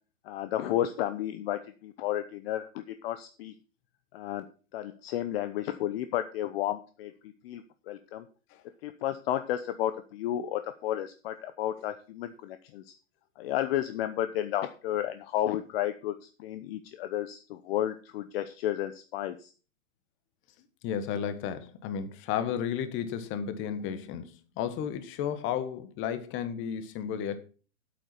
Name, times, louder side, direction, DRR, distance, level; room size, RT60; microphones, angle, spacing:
voice 1, 0.2-3.5 4.1-4.4 4.7-7.1 7.4-8.3 8.8-12.9 13.4-19.5, left 12 dB, 50° left, 0.9 m, -32 dB
voice 2, 20.8-27.5, left 8 dB, 30° left, 1.4 m, -33 dB
8.6 x 8.3 x 5.9 m
hypercardioid pair, 135°, 39 cm